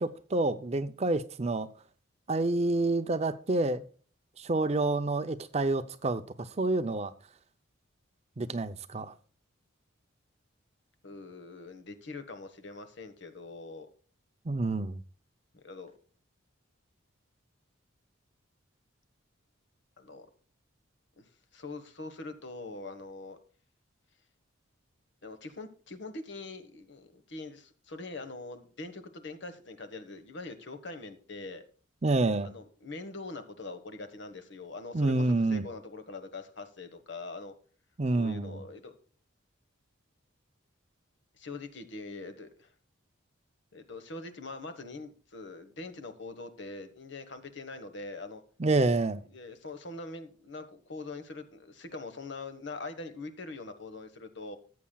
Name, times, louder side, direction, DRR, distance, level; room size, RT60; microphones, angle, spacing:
voice 1, 0.0-1.7 2.3-3.8 4.4-7.1 8.4-9.1 14.5-15.0 32.0-32.5 34.9-35.6 38.0-38.6 48.6-49.2, right 2 dB, 30° right, 12 dB, 0.5 m, -28 dB
voice 2, 11.0-13.9 15.5-15.9 20.0-20.3 21.2-21.3 21.5-23.4 25.2-31.6 32.4-37.5 38.1-38.9 41.4-42.7 43.7-48.4 49.3-54.6, left 3 dB, 55° left, 9 dB, 1.3 m, -43 dB
14.0 x 8.4 x 2.3 m, 0.41 s
head